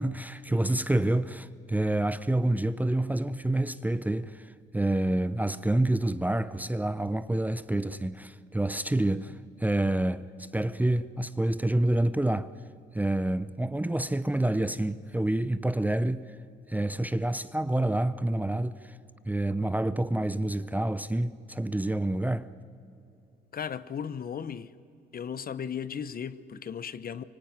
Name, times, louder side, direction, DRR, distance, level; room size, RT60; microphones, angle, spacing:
voice 1, 0.0-12.5 12.9-16.2 16.7-19.0 19.2-22.5, right 1 dB, 10° right, 0.7 m, -28 dB
voice 2, 23.5-24.7 25.1-27.2, left 7 dB, 45° left, 0.9 m, -36 dB
24.0 x 24.0 x 9.3 m
cardioid pair, 90°, 20 cm